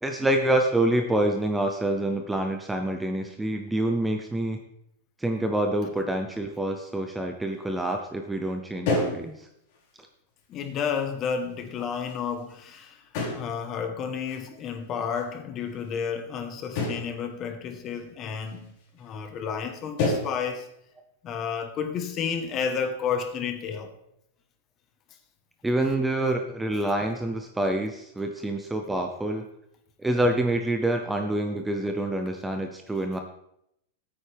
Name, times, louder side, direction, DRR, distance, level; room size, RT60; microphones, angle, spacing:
voice 1, 0.0-4.6 5.2-9.5 25.6-29.5 30.0-33.2, right 1 dB, 5° right, 0.6 m, -27 dB
sound 1, 7.5-7.6 7.8-8.0 8.4-8.5 8.8-9.3 9.7-9.8 10.6-11.0 11.7-12.7 13.1-13.6 14.2-14.4 15.1-15.2 16.7-17.1 17.9-18.0 18.5-18.7 19.0-19.1 19.4-19.7 20.0-20.4, left 2 dB, 45° left, 3.7 m, -29 dB
voice 2, 10.5-18.7 18.9-20.7 21.2-23.9, left 6 dB, 25° left, 1.2 m, -31 dB
14.0 x 8.9 x 3.5 m
supercardioid pair, 165°, 0 cm